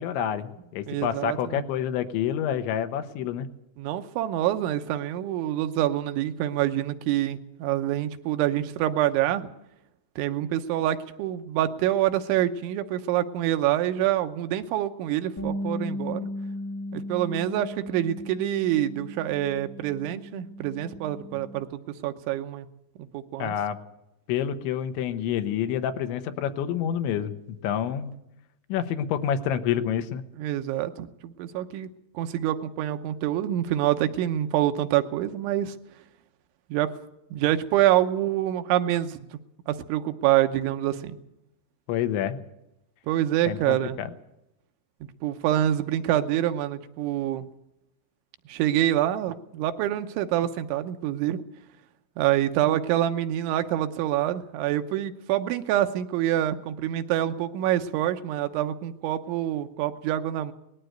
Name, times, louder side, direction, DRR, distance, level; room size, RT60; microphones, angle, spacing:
voice 1, 0.0-3.5 23.4-23.8 24.3-27.3 27.6-28.1 28.7-30.2 41.9-42.4 43.5-44.1, left 9 dB, 80° left, 9 dB, 3.3 m, -28 dB
voice 2, 0.9-1.6 3.8-9.5 10.2-16.3 16.9-22.7 23.0-23.5 30.4-31.9 32.1-35.7 36.7-37.0 37.3-39.4 39.7-41.2 43.1-44.0 45.2-47.5 48.5-51.4 52.2-60.5, right 12 dB, 80° right, 8 dB, 3.2 m, -26 dB
Bass guitar, 15.4-21.6, left 1 dB, 25° left, 0.4 m, -36 dB
19.5 x 14.5 x 9.1 m, 0.86 s
omnidirectional pair, 5.5 m